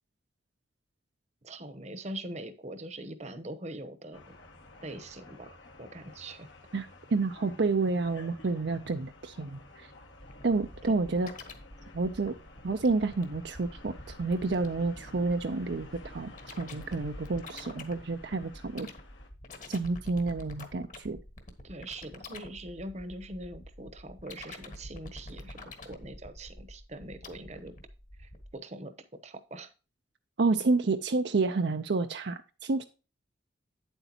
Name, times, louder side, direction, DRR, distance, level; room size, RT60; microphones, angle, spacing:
voice 1, 1.4-4.4 4.8-6.5 10.8-11.0 21.6-27.7 28.2-28.9 29.2-29.7, right 1 dB, 40° right, 10 dB, 0.9 m, -42 dB
sound 1, 4.1-19.3, left 2 dB, 85° left, 2.0 m, -52 dB
voice 2, 6.7-9.9 10.4-11.3 11.9-12.3 12.6-18.9 19.7-21.2 30.4-32.8, right 3 dB, 65° right, 7 dB, 0.6 m, -29 dB
sound 2, 10.2-28.5, left 1 dB, 45° left, 1.4 m, -47 dB
9.1 x 8.0 x 2.9 m, 0.32 s
head